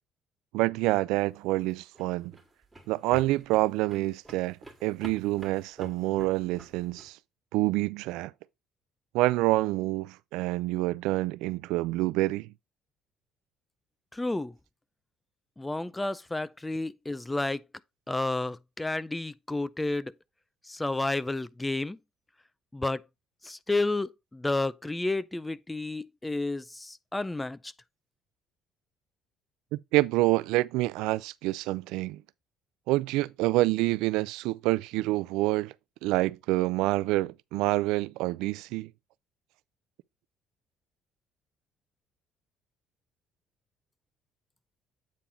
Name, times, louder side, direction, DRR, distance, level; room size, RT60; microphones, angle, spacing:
voice 1, 0.5-2.3 2.9-4.6 4.8-7.2 7.5-8.3 9.1-12.5 29.7-32.2 32.9-35.7 36.0-38.9, right 19 dB, 85° right, 0.3 m, -27 dB
sound 1, 1.4-7.1, right 1 dB, 10° right, 2.1 m, -49 dB
voice 2, 14.1-14.5 15.6-17.6 18.1-20.1 20.7-22.0 22.7-23.0 23.4-27.7, left 2 dB, 10° left, 0.4 m, -31 dB
8.5 x 3.8 x 4.3 m
cardioid pair, 110°, 0 cm